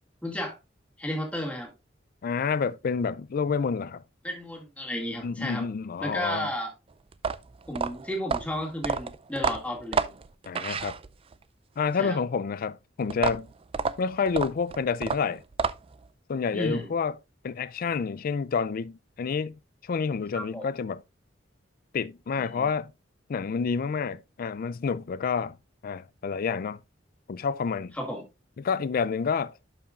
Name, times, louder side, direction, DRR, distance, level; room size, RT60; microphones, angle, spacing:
voice 1, 0.2-0.6 1.0-1.7 4.2-5.7 6.0-6.7 7.7-10.2 12.0-12.2 16.5-16.9 20.3-20.7 22.4-22.7 28.0-28.3, left 1 dB, 5° left, 2.1 m, -33 dB
voice 2, 2.2-4.0 5.2-6.5 10.4-11.0 11.8-13.5 14.0-15.4 16.3-17.1 17.4-21.0 21.9-22.9 23.3-25.6 25.8-26.8 27.3-28.0 28.6-29.5, left 5 dB, 50° left, 0.4 m, -29 dB
sound 1, 7.1-11.4 13.1-16.1, right 5 dB, 30° right, 0.4 m, -30 dB
11.5 x 5.5 x 2.4 m
head